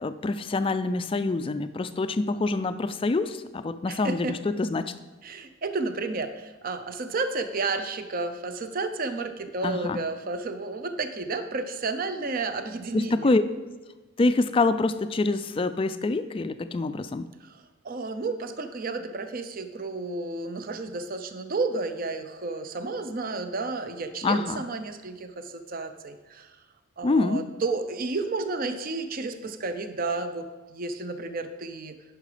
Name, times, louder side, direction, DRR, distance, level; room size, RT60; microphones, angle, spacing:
voice 1, 0.0-4.9 9.6-10.0 12.9-13.4 14.2-17.3 24.2-24.6 27.0-27.4, left 3 dB, 25° left, 12 dB, 0.3 m, -26 dB
voice 2, 3.9-4.4 5.2-13.3 17.4-26.6 27.0-31.9, right 3 dB, 40° right, 9 dB, 0.6 m, -32 dB
10.5 x 5.9 x 5.0 m, 1.2 s
head